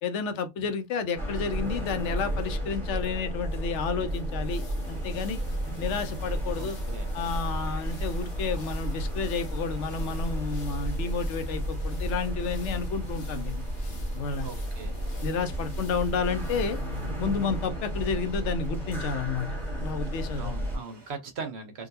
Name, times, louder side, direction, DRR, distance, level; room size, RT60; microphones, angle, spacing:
voice 1, 0.0-4.6 4.9-5.4 5.8-6.8 7.1-13.6 14.1-14.5 15.2-16.8 17.2-19.5 19.8-20.5, left 5 dB, 80° left, 0.9 m, -31 dB
sound 1, 0.9-18.7, left 3 dB, 55° left, 0.8 m, -53 dB
sound 2, 1.2-20.8, equal, ahead, 1.1 m, -32 dB
sound 3, 4.8-21.1, right 4 dB, 20° right, 1.4 m, -54 dB
voice 2, 6.5-7.1 14.4-14.9 20.4-21.9, right 4 dB, 65° right, 1.2 m, -39 dB
3.7 x 2.3 x 2.6 m
omnidirectional pair, 1.2 m